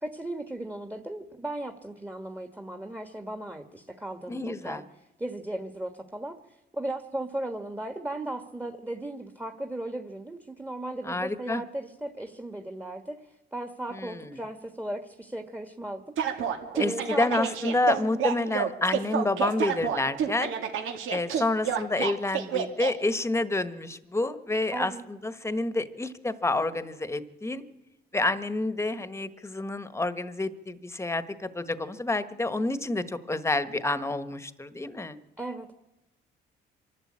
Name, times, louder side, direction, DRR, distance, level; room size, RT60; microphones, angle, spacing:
voice 1, 0.0-16.0 16.3-16.4 16.7-17.5 18.0-18.2 24.7-25.0 35.4-35.7, right 1 dB, 10° right, 6 dB, 1.5 m, -36 dB
voice 2, 4.3-4.8 11.0-11.6 13.9-14.4 16.8-20.5 21.1-27.6 28.1-35.2, left 2 dB, 15° left, 13 dB, 1.3 m, -29 dB
sound 1, 16.2-22.9, right 8 dB, 85° right, 2.2 m, -29 dB
25.5 x 12.0 x 8.7 m, 0.96 s
cardioid pair, 90°, 20 cm